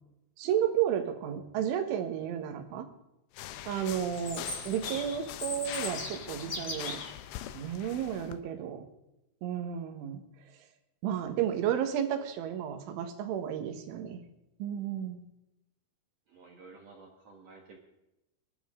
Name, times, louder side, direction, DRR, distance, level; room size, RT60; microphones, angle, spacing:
voice 1, 0.4-2.9 3.7-7.0 7.5-8.8 9.4-10.2 11.0-14.2 14.6-15.2, right 9 dB, 85° right, 7 dB, 3.9 m, -32 dB
sound 1, 3.3-8.4, left 13 dB, 85° left, 3.2 m, -42 dB
Chirp tweet, 4.1-7.1, left 2 dB, 40° left, 4.1 m, -39 dB
voice 2, 16.3-17.8, right 3 dB, 65° right, 1 dB, 1.6 m, -52 dB
24.0 x 12.0 x 3.7 m, 0.91 s
omnidirectional pair, 5.4 m